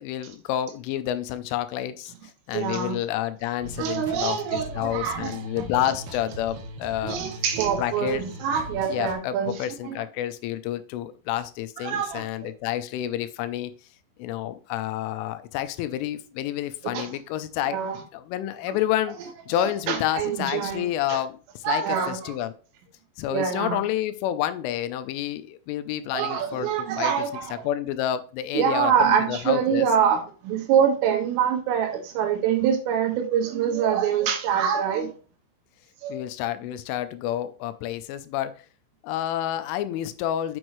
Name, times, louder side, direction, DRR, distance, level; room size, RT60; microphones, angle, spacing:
voice 1, 0.0-2.1 2.5-7.3 7.8-8.2 8.9-13.7 14.2-17.8 18.1-19.2 19.5-22.5 23.2-27.1 27.5-29.9 36.1-38.5 39.0-40.6, left 12 dB, 85° left, 3.1 m, -29 dB
voice 2, 2.5-3.0 3.8-5.4 7.0-9.6 9.9-10.0 11.8-12.2 16.9-17.1 17.7-18.0 19.9-21.2 21.7-22.3 23.3-23.8 26.1-27.7 28.5-35.1 36.0-36.2, right 8 dB, 85° right, 4.1 m, -25 dB
sound 1, 3.6-9.1, right 1 dB, 70° right, 2.6 m, -40 dB
7.8 x 6.3 x 3.1 m
omnidirectional pair, 5.7 m